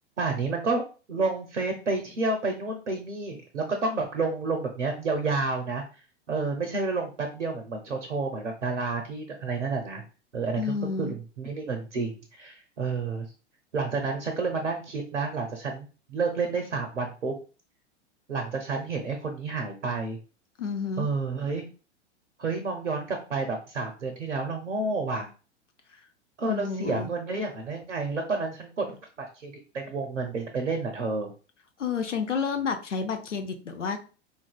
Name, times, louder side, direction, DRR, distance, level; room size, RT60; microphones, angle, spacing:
voice 1, 0.2-0.8 1.1-10.0 10.3-10.6 11.0-13.3 13.7-17.3 18.3-20.2 21.0-21.7 22.4-25.3 26.4-31.3, right 3 dB, 85° right, 4 dB, 0.7 m, -30 dB
voice 2, 10.6-11.1 20.6-21.1 26.4-27.1 31.8-34.0, left 5 dB, 85° left, 6 dB, 0.6 m, -30 dB
3.8 x 2.5 x 2.2 m, 0.35 s
figure-of-eight pair, 95°, 35 cm